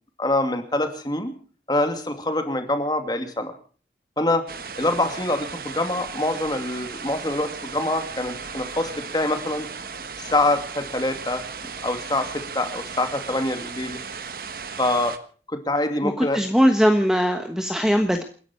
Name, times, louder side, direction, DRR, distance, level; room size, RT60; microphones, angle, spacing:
voice 1, 0.2-1.3 1.7-3.5 4.2-4.4 4.8-9.7 10.2-11.4 11.8-14.0 14.8-15.1 15.5-16.4, left 2 dB, 25° left, 7 dB, 2.5 m, -25 dB
sound 1, 4.5-15.2, right 5 dB, 55° right, 1.3 m, -36 dB
voice 2, 16.0-18.2, equal, 5° right, 5 dB, 1.2 m, -20 dB
28.5 x 11.0 x 4.5 m, 0.41 s
head